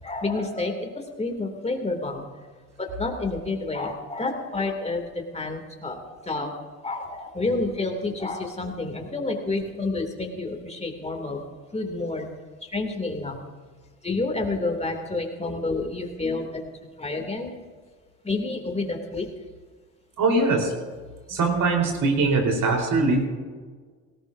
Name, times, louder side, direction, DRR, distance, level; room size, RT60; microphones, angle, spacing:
voice 1, 0.0-2.2 2.8-6.0 6.2-6.5 6.8-11.4 11.7-12.3 12.6-13.4 14.0-16.6 17.0-17.5 18.2-19.3, left 3 dB, 15° left, 3 dB, 2.7 m, -29 dB
voice 2, 20.2-20.7 21.3-23.2, right 3 dB, 55° right, 1 dB, 4.3 m, -22 dB
18.0 x 18.0 x 2.7 m, 1.5 s
hypercardioid pair, 75°, 39 cm